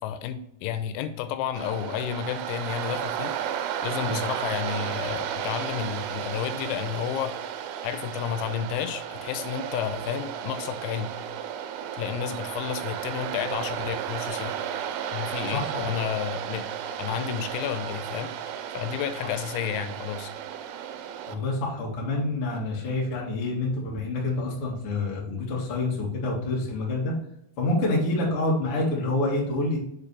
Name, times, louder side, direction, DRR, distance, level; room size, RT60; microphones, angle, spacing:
voice 1, 0.0-3.3 3.8-7.4 7.8-11.1 12.0-14.5 15.1-16.6 17.0-18.3 18.7-20.3, left 9 dB, 85° left, 10 dB, 3.3 m, -31 dB
Waves surf, 1.6-21.3, right 9 dB, 80° right, 2.9 m, -33 dB
voice 2, 15.5-16.1 21.3-27.1 27.6-29.8, left 2 dB, 55° left, -3 dB, 1.6 m, -27 dB
7.1 x 5.1 x 3.2 m, 0.76 s
omnidirectional pair, 6.0 m